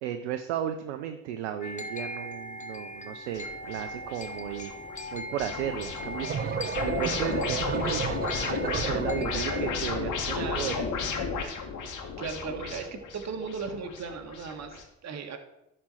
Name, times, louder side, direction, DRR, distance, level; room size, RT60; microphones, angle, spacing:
voice 1, 0.0-4.7 5.1-8.2 8.5-10.9, right 10 dB, 90° right, 8 dB, 0.7 m, -35 dB
sound 1, 1.6-9.7, left 1 dB, 20° left, 1.3 m, -40 dB
sound 2, 3.3-14.8, left 5 dB, 60° left, 2.2 m, -34 dB
sound 3, 6.0-9.9, right 8 dB, 25° right, 0.4 m, -33 dB
voice 2, 10.3-10.8 12.2-15.4, right 5 dB, 50° right, 4 dB, 1.7 m, -37 dB
11.5 x 4.3 x 7.6 m, 0.86 s
hypercardioid pair, 60°, 35 cm